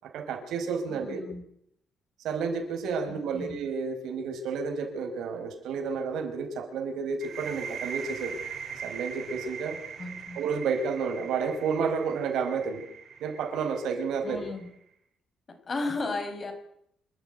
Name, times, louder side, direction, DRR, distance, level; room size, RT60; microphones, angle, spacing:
voice 1, 0.0-1.3 2.2-8.4 8.8-9.8 10.3-12.8 13.2-14.4, right 5 dB, 80° right, 5 dB, 4.9 m, -31 dB
voice 2, 0.9-1.4 3.1-3.5 10.0-10.4 14.2-14.7 15.7-16.5, left 3 dB, 30° left, 5 dB, 5.3 m, -34 dB
sound 1, 7.2-14.7, right 7 dB, 50° right, 4.4 m, -41 dB
27.0 x 12.0 x 9.3 m, 0.73 s
cardioid pair, 140°, 0 cm